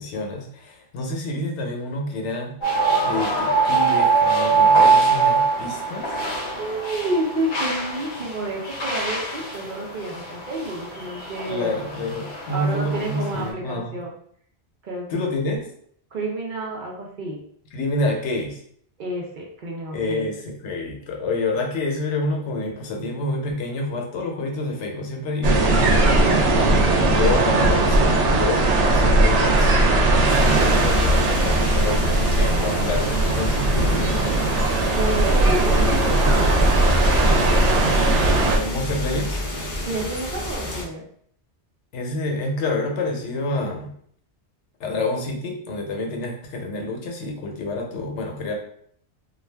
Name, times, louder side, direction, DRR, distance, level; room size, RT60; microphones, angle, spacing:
voice 1, 0.0-6.2 11.5-14.0 15.1-15.6 17.7-18.6 19.9-29.8 30.1-32.0 32.4-33.7 38.5-39.5 41.9-43.9 44.8-48.6, left 2 dB, 85° left, 2 dB, 0.9 m, -28 dB
sound 1, 2.6-13.5, right 4 dB, 50° left, 0.7 m, -23 dB
voice 2, 6.6-11.7 12.5-14.1 14.8-15.2 16.1-17.4 19.0-20.3 35.0-37.1 39.9-41.0, right 2 dB, 55° right, -1 dB, 0.7 m, -30 dB
sound 2, 25.4-38.6, right 2 dB, 90° right, 0.9 m, -19 dB
sound 3, 30.3-40.8, left 1 dB, 25° left, 0.4 m, -28 dB
2.4 x 2.2 x 3.2 m, 0.63 s
omnidirectional pair, 1.2 m